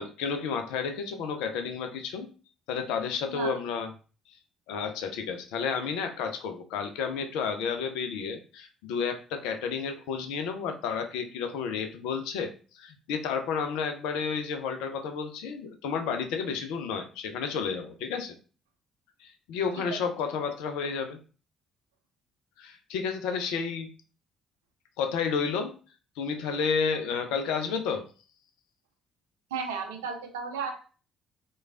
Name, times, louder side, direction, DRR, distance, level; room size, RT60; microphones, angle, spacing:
voice 1, 0.0-2.3 2.7-3.9 4.7-18.3 19.2-21.2 22.6-23.9 25.0-25.7 26.2-28.1, left 6 dB, 70° left, 7 dB, 0.4 m, -31 dB
voice 2, 29.5-30.7, right 5 dB, 75° right, 5 dB, 0.5 m, -33 dB
3.1 x 2.2 x 2.4 m, 0.37 s
figure-of-eight pair, 45°, 0 cm